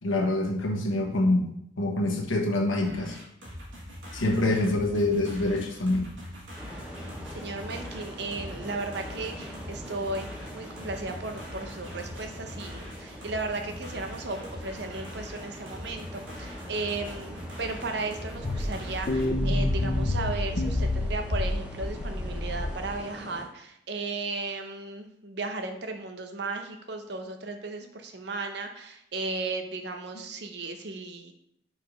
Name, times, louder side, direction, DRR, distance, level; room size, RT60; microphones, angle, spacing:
voice 1, 0.0-1.5 1.8-3.2 4.1-6.1, left 2 dB, 85° left, 1 dB, 1.3 m, -25 dB
sound 1, 2.8-19.3, equal, 75° right, 1.8 m, -43 dB
sound 2, 6.6-23.4, equal, 5° right, 0.9 m, -44 dB
voice 2, 7.3-31.3, right 3 dB, 55° right, 5 dB, 0.7 m, -35 dB
sound 3, 18.4-23.0, left 1 dB, 45° left, 0.5 m, -28 dB
4.7 x 4.3 x 5.1 m, 0.75 s
head